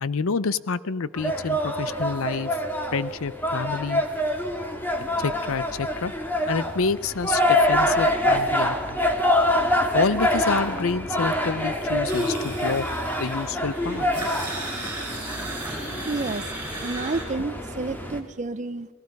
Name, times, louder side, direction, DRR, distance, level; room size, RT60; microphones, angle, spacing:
voice 1, 0.0-2.5 2.9-4.0 5.2-6.1 6.5-9.0 9.9-12.9 13.2-14.1, left 4 dB, 70° left, 17 dB, 0.6 m, -28 dB
sound 1, 1.2-18.2, left 1 dB, 10° left, 1.8 m, -26 dB
sound 2, 12.1-17.2, right 2 dB, 10° right, 7.0 m, -36 dB
voice 2, 16.0-16.4 16.8-18.9, right 3 dB, 35° right, 12 dB, 0.5 m, -30 dB
29.5 x 19.5 x 5.3 m, 1.5 s
head